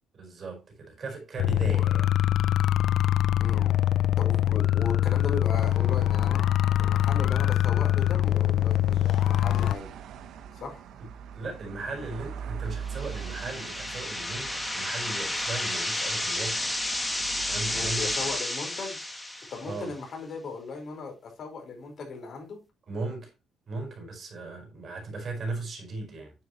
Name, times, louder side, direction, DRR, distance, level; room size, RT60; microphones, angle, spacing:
voice 1, 0.1-2.1 11.3-16.7 17.5-18.1 19.6-19.9 22.9-23.3 23.7-26.3, right 3 dB, 40° right, 4.7 m, -37 dB
sound 1, 1.4-9.8, left 12 dB, 65° left, 0.3 m, -23 dB
voice 2, 3.4-3.8 4.2-6.5 6.8-9.9 10.5-10.8 17.7-19.0 19.5-22.6, left 4 dB, 45° left, 4.7 m, -37 dB
sound 2, 5.5-18.4, right 7 dB, 75° right, 1.0 m, -43 dB
sound 3, 12.8-19.8, left 1 dB, 10° left, 1.8 m, -31 dB
9.8 x 7.0 x 3.1 m
cardioid pair, 150°, 0 cm